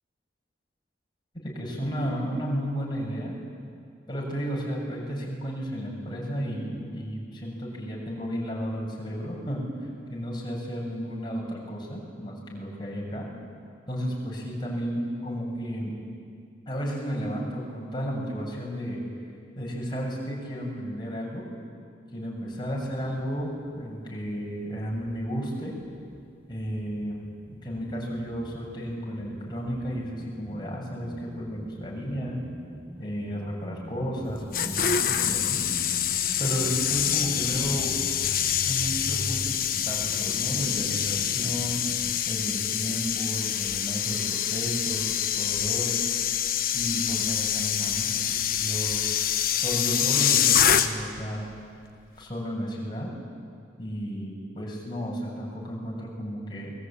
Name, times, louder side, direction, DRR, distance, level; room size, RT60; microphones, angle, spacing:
voice 1, 1.4-3.3 4.1-9.7 10.1-13.3 13.9-15.9 16.7-19.0 19.6-21.5 22.1-25.7 26.5-27.2 27.6-32.4 33.0-35.6 36.4-38.0 38.5-41.8 42.3-46.0 46.7-48.1 48.5-49.0 49.5-51.4 52.2-53.1 53.8-56.7, equal, 25° left, -2 dB, 7.0 m, -33 dB
sound 1, 22.5-24.2 24.4-42.2, right 1 dB, 10° right, 1.6 m, -43 dB
sound 2, 34.3-51.2 51.5-51.8, left 9 dB, 50° left, 1.3 m, -26 dB
29.0 x 22.0 x 8.9 m, 2.3 s
head